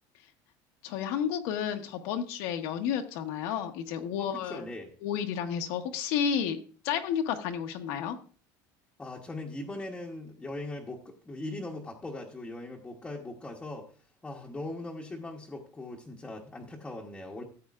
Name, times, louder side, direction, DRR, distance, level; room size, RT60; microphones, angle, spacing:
voice 1, 0.8-4.6 5.0-6.6 6.8-8.2, left 8 dB, 70° left, 4 dB, 1.0 m, -31 dB
voice 2, 4.2-4.9 9.0-13.9 14.2-17.4, left 2 dB, 10° left, -2 dB, 0.9 m, -40 dB
14.5 x 8.4 x 2.4 m, 0.40 s
cardioid pair, 175°, 9 cm